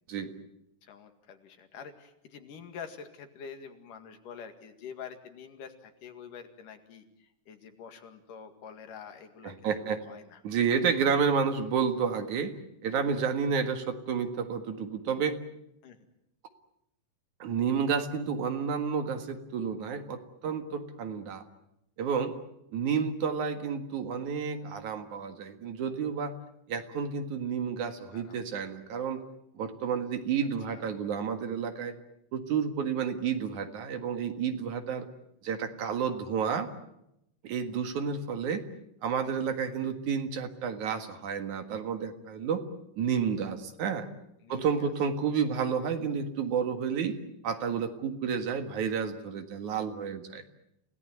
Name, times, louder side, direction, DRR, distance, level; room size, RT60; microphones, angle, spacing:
voice 1, 0.8-10.4 15.8-16.1 28.1-28.4 30.4-31.0 44.4-44.9 45.3-45.4, left 7 dB, 75° left, 7 dB, 3.6 m, -47 dB
voice 2, 9.4-10.0 10.4-12.6 12.8-15.4 17.4-21.4 22.0-22.3 22.7-26.3 26.7-29.2 29.5-31.9 32.3-35.1 35.4-36.7 37.4-38.6 39.0-42.7 43.0-44.1 44.5-47.2 47.4-50.4, right 6 dB, 65° right, 7 dB, 3.0 m, -30 dB
29.0 x 18.0 x 9.1 m, 0.83 s
omnidirectional pair, 3.8 m